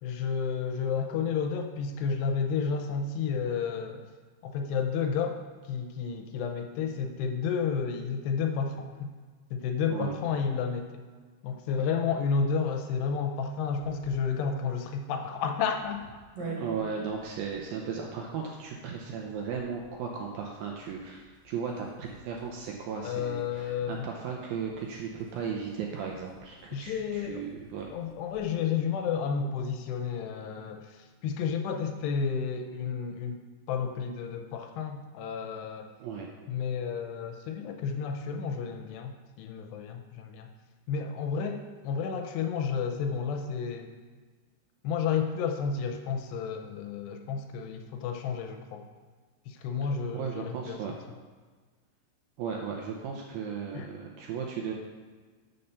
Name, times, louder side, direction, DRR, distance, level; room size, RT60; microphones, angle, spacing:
voice 1, 0.0-4.0 4.4-9.1 9.5-10.9 11.4-16.0 16.4-16.6 23.0-24.0 26.7-27.4 27.9-33.4 33.7-35.9 36.5-39.1 39.4-40.5 40.9-43.9 44.8-48.9 49.5-50.8 53.7-53.9, left 6 dB, 85° left, 5 dB, 2.7 m, -31 dB
sound 1, 13.7-28.6, right 4 dB, 50° right, 2.5 m, -50 dB
voice 2, 16.6-27.9 36.0-36.3 50.1-51.0 52.4-54.7, right 6 dB, 80° right, 0 dB, 2.2 m, -36 dB
8.3 x 5.6 x 6.6 m, 1.4 s
omnidirectional pair, 5.0 m